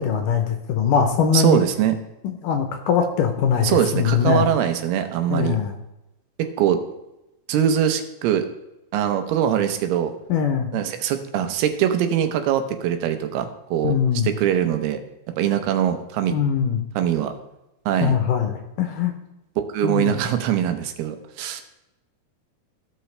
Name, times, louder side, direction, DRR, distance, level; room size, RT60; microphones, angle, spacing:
voice 1, 0.0-1.6 2.2-4.4 5.3-5.7 10.3-10.7 13.8-14.3 16.3-16.8 18.0-19.1 19.8-20.1, left 7 dB, 75° left, 5 dB, 2.1 m, -21 dB
voice 2, 1.3-2.0 3.6-5.6 6.4-6.8 7.5-8.5 8.9-10.1 10.7-13.9 14.2-15.0 15.4-16.4 17.0-17.3 17.9-18.2 19.7-21.6, right 10 dB, 85° right, 8 dB, 2.8 m, -22 dB
15.5 x 5.7 x 3.2 m, 0.94 s
omnidirectional pair, 4.4 m